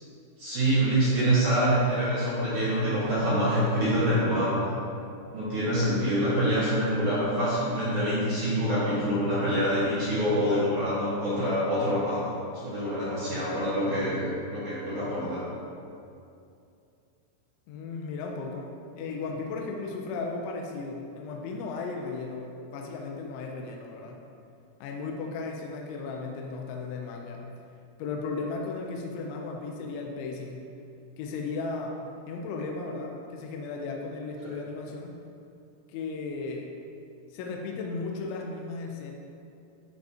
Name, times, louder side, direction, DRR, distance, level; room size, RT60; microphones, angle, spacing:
voice 1, 0.4-4.7 5.3-12.3 12.6-15.4 34.4-34.5, equal, 65° right, -11 dB, 2.0 m, -26 dB
voice 2, 17.7-24.2 24.8-27.4 28.0-30.6 31.2-32.0 32.3-35.2 35.9-36.7 37.3-39.2, left 4 dB, 80° left, 1 dB, 2.9 m, -35 dB
12.5 x 5.2 x 2.8 m, 2.5 s
omnidirectional pair, 5.7 m